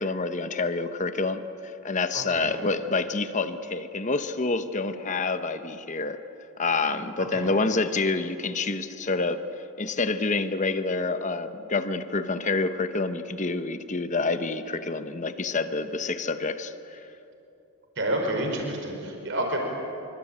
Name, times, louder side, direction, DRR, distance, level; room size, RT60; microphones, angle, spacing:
voice 1, 0.0-6.2 6.6-9.4 9.8-17.0, left 3 dB, 35° left, 10 dB, 1.0 m, -28 dB
voice 2, 2.1-2.5 7.2-7.5 18.0-19.6, right 1 dB, 55° right, 2 dB, 5.1 m, -29 dB
26.0 x 25.0 x 8.8 m, 2.9 s
head